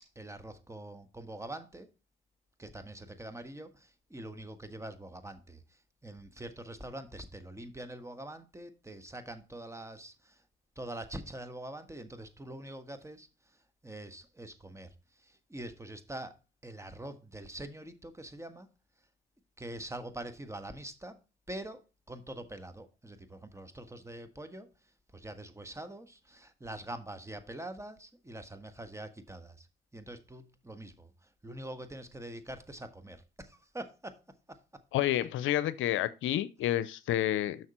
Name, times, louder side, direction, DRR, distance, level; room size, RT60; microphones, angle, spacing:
voice 1, 0.1-1.9 2.6-10.4 10.7-13.3 13.8-16.4 16.6-18.7 19.6-21.2 21.5-21.8 22.1-24.7 25.1-29.7 29.9-34.2 34.5-34.6, right 1 dB, 15° right, 1.4 m, -44 dB
voice 2, 34.9-37.7, left 13 dB, 80° left, 0.6 m, -29 dB
6.5 x 6.3 x 4.3 m
supercardioid pair, 55°, 20 cm